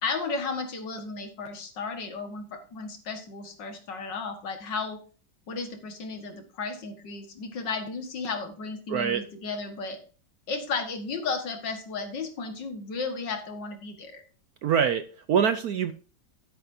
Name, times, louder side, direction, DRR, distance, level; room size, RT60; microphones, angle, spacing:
voice 1, 0.0-5.0 5.5-10.0 10.5-14.2, left 4 dB, 65° left, 6 dB, 2.3 m, -34 dB
voice 2, 8.9-9.2 14.6-15.9, right 7 dB, 70° right, 11 dB, 0.9 m, -24 dB
11.5 x 10.0 x 2.7 m, 0.39 s
omnidirectional pair, 2.1 m